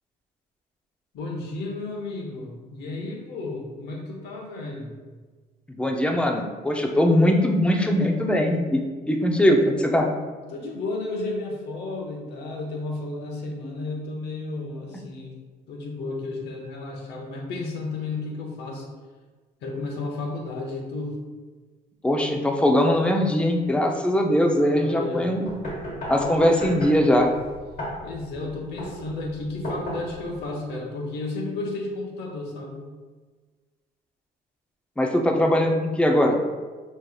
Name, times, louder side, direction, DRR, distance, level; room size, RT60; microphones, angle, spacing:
voice 1, 1.1-5.0 10.5-15.4 15.7-18.9 19.6-21.2 24.7-25.3 28.0-32.9, left 2 dB, 75° left, 0 dB, 1.0 m, -33 dB
voice 2, 5.8-8.8 9.1-10.1 22.0-25.5 26.1-27.3 35.0-36.4, left 1 dB, 5° left, 2 dB, 0.4 m, -21 dB
sound 1, 25.5-30.5, equal, 60° left, 1.5 m, -34 dB
5.3 x 3.1 x 2.2 m, 1.4 s
cardioid pair, 110°, 17 cm